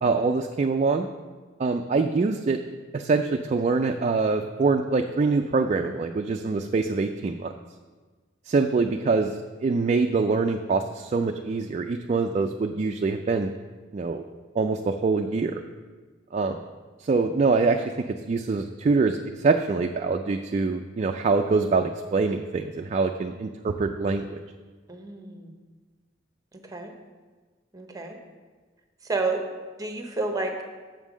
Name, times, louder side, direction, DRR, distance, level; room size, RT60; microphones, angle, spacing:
voice 1, 0.0-1.1 1.6-2.6 2.9-7.5 8.5-9.4 9.6-13.5 13.9-14.2 14.6-15.6 16.3-16.6 17.0-24.4, right 4 dB, 35° right, 5 dB, 0.3 m, -24 dB
voice 2, 24.9-25.5 26.5-26.9 27.7-28.2 29.0-29.4 29.8-30.5, right 3 dB, 20° right, 5 dB, 0.8 m, -30 dB
7.2 x 5.6 x 6.1 m, 1.4 s
head